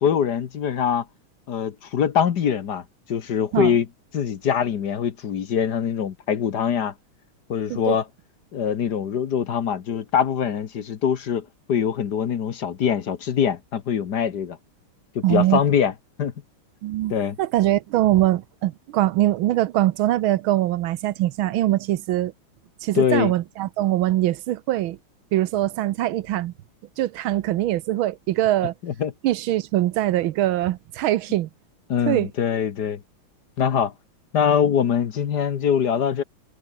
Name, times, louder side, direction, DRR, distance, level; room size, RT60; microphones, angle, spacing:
voice 1, 0.0-1.0 1.5-2.8 3.1-3.9 4.1-6.9 7.5-8.0 8.5-14.6 15.1-15.9 16.2-16.3 17.1-17.4 22.9-23.3 28.8-29.1 31.9-33.0 33.6-33.9 34.3-36.2, left 8 dB, 55° left, 1.6 m, -23 dB
voice 2, 15.2-15.6 16.8-17.1 17.4-22.3 22.8-25.0 25.3-26.5 27.0-28.7 29.2-31.5 32.1-32.3, right 14 dB, 75° right, 1.5 m, -22 dB
omnidirectional pair, 2.3 m